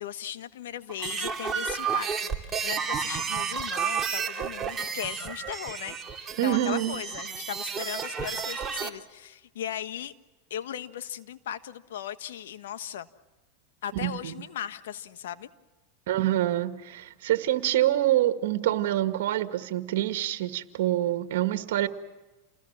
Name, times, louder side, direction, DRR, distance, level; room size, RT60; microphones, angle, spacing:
voice 1, 0.0-10.1 10.5-13.1 13.8-15.5, left 10 dB, 80° left, 12 dB, 1.4 m, -37 dB
sound 1, 0.9-8.9, right 6 dB, 20° right, 2.6 m, -31 dB
voice 2, 6.4-7.0 13.9-14.3 16.1-21.9, right 13 dB, 70° right, 8 dB, 1.9 m, -26 dB
29.0 x 20.5 x 7.5 m, 1.1 s
supercardioid pair, 125°, 0 cm